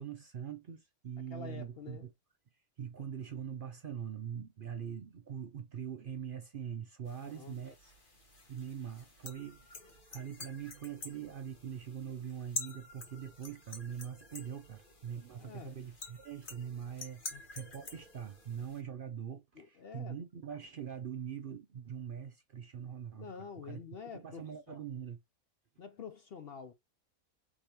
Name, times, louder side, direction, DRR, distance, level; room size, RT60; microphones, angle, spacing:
voice 1, 0.0-2.1 2.8-7.9 8.5-23.8 24.1-25.2, right 8 dB, 60° right, 0.5 m, -43 dB
voice 2, 1.3-2.1 7.2-7.6 15.4-15.7 17.3-17.4 19.6-20.2 23.1-24.8 25.8-26.7, left 6 dB, 55° left, 0.7 m, -47 dB
sound 1, 7.1-18.8, left 2 dB, 35° left, 1.5 m, -48 dB
4.9 x 3.6 x 2.9 m
omnidirectional pair, 1.5 m